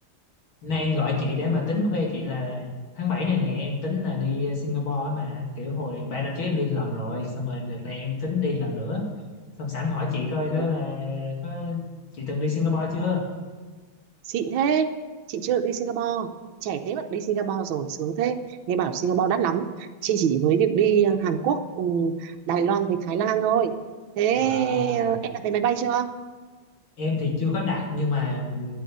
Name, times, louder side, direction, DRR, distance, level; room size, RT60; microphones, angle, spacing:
voice 1, 0.6-2.7 2.9-9.0 9.6-11.8 12.1-13.2 24.3-25.2 27.0-28.8, left 3 dB, 65° left, -1 dB, 2.9 m, -27 dB
voice 2, 14.2-14.9 15.3-16.3 16.6-23.7 24.2-26.1, right 8 dB, 70° right, 6 dB, 1.5 m, -24 dB
11.0 x 9.1 x 8.6 m, 1.3 s
omnidirectional pair, 2.3 m